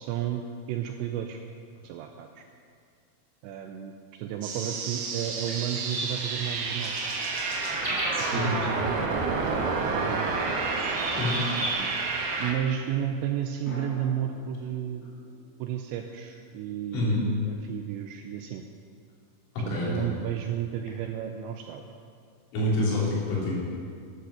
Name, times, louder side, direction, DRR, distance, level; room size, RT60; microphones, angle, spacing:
voice 1, 0.0-1.4 1.8-2.4 3.4-6.9 7.8-10.4 11.6-11.9 12.4-15.2 15.6-18.6 19.7-21.9, right 10 dB, 90° right, 5 dB, 2.6 m, -33 dB
sound 1, 4.4-12.5, right 4 dB, 70° right, 2.5 m, -30 dB
sound 2, 4.9-8.4 10.2-10.5 10.8-11.7, right 1 dB, 10° right, 1.5 m, -36 dB
voice 2, 8.3-8.6 11.1-11.4 16.9-17.2 19.7-20.1 22.5-23.6, left 2 dB, 75° left, -6 dB, 5.9 m, -27 dB
sound 3, 13.7-18.0, equal, 15° left, 3.8 m, -48 dB
12.0 x 11.0 x 6.4 m, 2.2 s
omnidirectional pair, 5.7 m